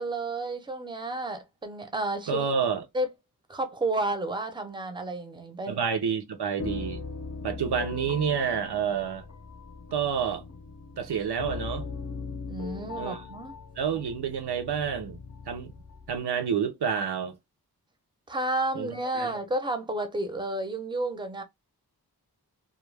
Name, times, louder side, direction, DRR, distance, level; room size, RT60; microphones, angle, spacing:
voice 1, 0.0-2.4 2.9-3.1 3.5-5.8 12.5-13.5 18.3-21.4, right 2 dB, 10° right, 0.5 m, -31 dB
voice 2, 2.3-2.9 5.7-7.0 7.4-9.2 9.9-10.4 11.0-11.9 12.9-13.2 13.8-15.7 16.1-17.4 18.7-18.9 19.1-19.3, right 7 dB, 90° right, 0.6 m, -29 dB
sound 1, 6.6-16.2, left 4 dB, 40° left, 0.6 m, -39 dB
2.3 x 2.1 x 3.2 m
wide cardioid pair, 80°, 38 cm